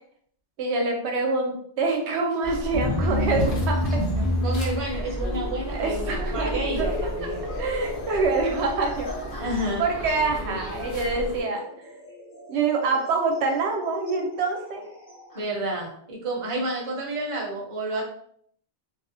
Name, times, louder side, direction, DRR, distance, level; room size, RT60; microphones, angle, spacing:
voice 1, 0.6-4.3 5.7-6.5 6.8-6.9 7.6-9.1 9.8-11.9 12.5-14.9, right 3 dB, 85° right, 2 dB, 0.9 m, -26 dB
sound 1, 2.4-11.4, equal, 60° left, 0.8 m, -34 dB
sound 2, 2.7-15.4, left 1 dB, 20° left, 0.7 m, -31 dB
voice 2, 4.4-7.4 9.4-9.9 15.3-18.0, right 1 dB, 35° right, -2 dB, 0.6 m, -30 dB
2.4 x 2.1 x 2.5 m, 0.65 s
omnidirectional pair, 1.1 m